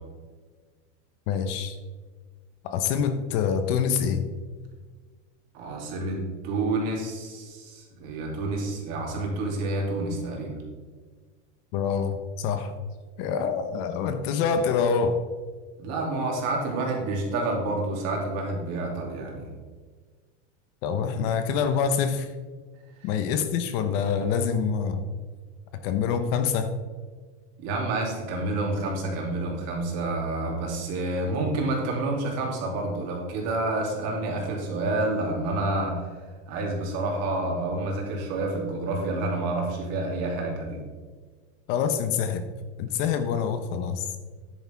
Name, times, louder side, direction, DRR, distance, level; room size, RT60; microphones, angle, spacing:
voice 1, 1.3-1.8 2.6-4.2 11.7-12.7 13.2-15.2 20.8-22.3 23.0-25.0 25.8-26.7 41.7-42.4 42.8-44.2, left 6 dB, 50° left, 8 dB, 0.9 m, -26 dB
voice 2, 5.5-10.6 15.8-19.5 27.6-36.1 36.5-40.8, right 2 dB, 45° right, -1 dB, 2.9 m, -29 dB
9.9 x 9.0 x 3.5 m, 1.5 s
supercardioid pair, 155°, 35 cm